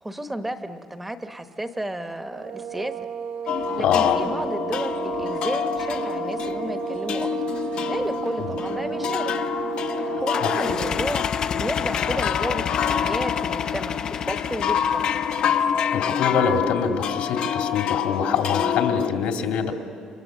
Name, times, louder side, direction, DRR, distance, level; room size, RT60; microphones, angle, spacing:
voice 1, 0.0-2.9 3.5-7.5 7.9-9.3 9.9-11.3 11.5-15.1, right 1 dB, 5° right, 8 dB, 1.1 m, -32 dB
sound 1, 2.3-11.0, right 8 dB, 85° right, 1.8 m, -32 dB
sound 2, 3.5-19.1, left 9 dB, 55° left, 1.1 m, -27 dB
voice 2, 3.8-4.2 8.4-8.5 10.0-10.8 15.9-19.7, left 7 dB, 75° left, 3 dB, 2.7 m, -25 dB
sound 3, 10.3-15.9, left 7 dB, 40° left, 0.7 m, -30 dB
28.0 x 26.5 x 7.6 m, 2.4 s
cardioid pair, 160°, 2 cm